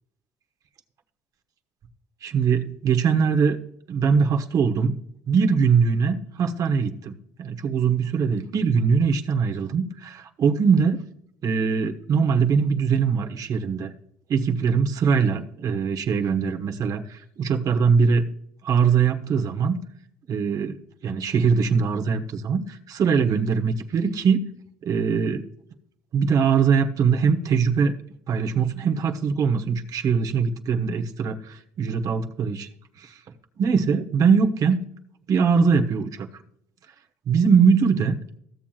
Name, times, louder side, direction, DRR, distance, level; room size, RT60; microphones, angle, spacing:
voice 1, 2.2-3.6 3.9-5.0 5.3-11.0 11.4-13.9 14.3-18.2 18.6-19.8 20.3-20.8 21.0-24.5 24.8-25.4 26.1-27.9 28.3-32.7 33.0-33.2 33.6-34.8 35.3-36.4 37.3-38.2, right 6 dB, 55° right, 4 dB, 1.2 m, -22 dB
15.5 x 7.2 x 2.5 m, 0.70 s
supercardioid pair, 75°, 7 cm